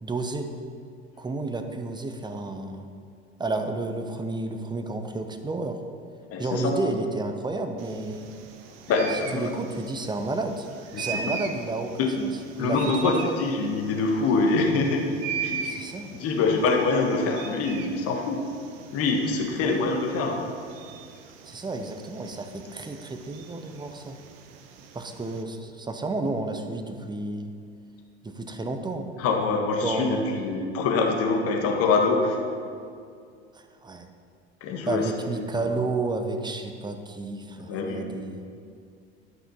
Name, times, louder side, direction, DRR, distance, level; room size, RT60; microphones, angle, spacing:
voice 1, 0.0-0.5 1.2-2.9 3.4-5.8 6.4-8.3 9.1-10.7 11.0-13.4 15.6-16.1 19.6-19.8 21.4-24.2 24.9-27.5 28.2-29.1 29.8-30.5 33.5-34.1 34.9-38.4, right 2 dB, 15° right, 6 dB, 0.9 m, -31 dB
voice 2, 6.3-6.7 8.9-9.5 10.9-11.4 12.0-12.1 12.6-15.0 15.4-15.8 16.1-18.4 18.9-20.4 29.2-32.4 34.6-35.1 37.7-38.1, left 3 dB, 45° left, 1 dB, 1.5 m, -25 dB
sound 1, 7.8-25.4, right 6 dB, 60° right, 0.9 m, -40 dB
11.5 x 5.9 x 5.6 m, 2.3 s
figure-of-eight pair, 70°, 33 cm